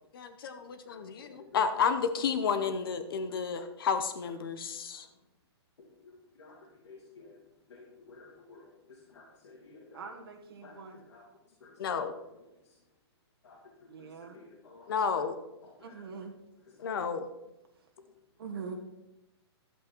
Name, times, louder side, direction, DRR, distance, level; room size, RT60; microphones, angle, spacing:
voice 1, 0.1-5.1 11.8-12.1 14.9-15.3 16.8-17.3, left 6 dB, 55° left, 9 dB, 0.9 m, -31 dB
voice 2, 6.0-7.4 7.7-10.0 10.6-11.2 11.6-11.9 13.4-14.1 14.3-15.1 15.6-15.7 16.8-16.9, left 3 dB, 80° left, -3 dB, 2.8 m, -54 dB
voice 3, 9.9-11.0 13.9-14.4 15.8-16.3 17.8-17.9 18.4-18.8, right 5 dB, 60° right, 3 dB, 1.4 m, -43 dB
12.0 x 8.2 x 4.5 m, 0.93 s
hypercardioid pair, 165°, 14 cm